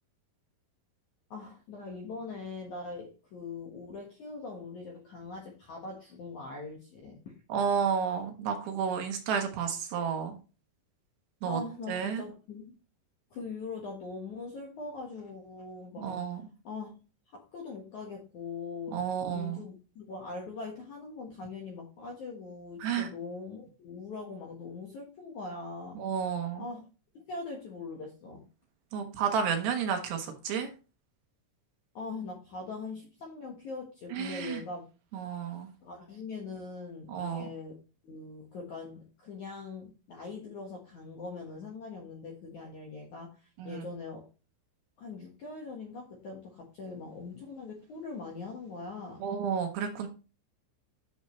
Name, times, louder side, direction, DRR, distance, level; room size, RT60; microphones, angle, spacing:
voice 1, 1.3-7.3 11.5-12.7 13.3-16.3 16.6-16.9 17.3-26.0 26.6-26.8 27.1-28.4 31.9-34.8 35.8-37.8 38.0-44.3 45.0-49.2, left 4 dB, 60° left, 0 dB, 2.0 m, -42 dB
voice 2, 7.5-10.4 11.4-11.6 11.9-12.2 16.0-16.4 18.9-19.6 22.8-23.1 26.0-26.6 28.9-30.7 34.1-34.6 35.1-35.7 37.1-37.5 43.6-43.8 49.2-50.1, right 7 dB, 70° right, 5 dB, 3.1 m, -31 dB
10.0 x 7.1 x 3.2 m, 0.33 s
omnidirectional pair, 5.7 m